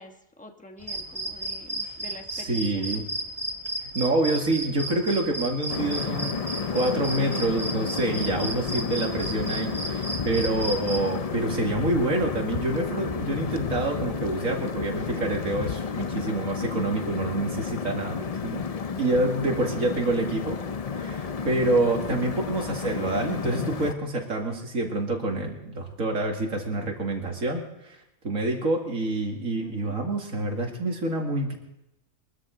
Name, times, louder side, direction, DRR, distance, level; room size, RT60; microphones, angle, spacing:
voice 1, 0.0-3.1 20.1-20.3 21.8-22.2 29.6-29.9, left 1 dB, 5° left, 3 dB, 1.2 m, -46 dB
sound 1, 0.8-11.0, right 1 dB, 20° right, 2.1 m, -34 dB
voice 2, 2.3-3.0 3.8-6.3 6.7-18.6 19.0-20.6 20.9-28.0 28.2-31.5, right 2 dB, 65° right, 1 dB, 2.6 m, -27 dB
sound 2, 5.7-23.9, left 5 dB, 55° left, 0.4 m, -31 dB
23.0 x 13.0 x 3.9 m, 0.88 s
omnidirectional pair, 1.5 m